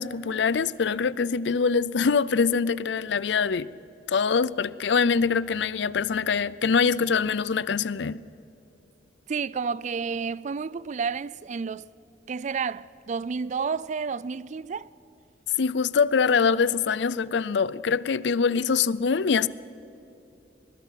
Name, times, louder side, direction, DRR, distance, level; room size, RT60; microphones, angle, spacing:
voice 1, 0.0-3.7 4.1-8.2 15.6-19.5, left 5 dB, 75° left, 0.5 m, -24 dB
voice 2, 9.3-11.9 12.3-14.9, right 5 dB, 40° right, 0.4 m, -30 dB
21.5 x 21.0 x 5.8 m
head